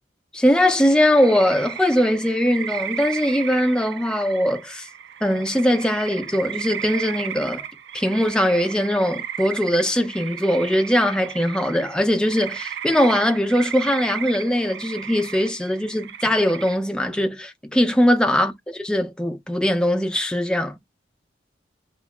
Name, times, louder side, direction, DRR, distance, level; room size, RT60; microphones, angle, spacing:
voice 1, 0.3-4.9 5.2-7.6 7.9-20.7, equal, 5° left, 0.4 m, -21 dB
sound 1, 0.8-16.8, right 9 dB, 80° right, 0.4 m, -34 dB
2.8 x 2.0 x 3.2 m
head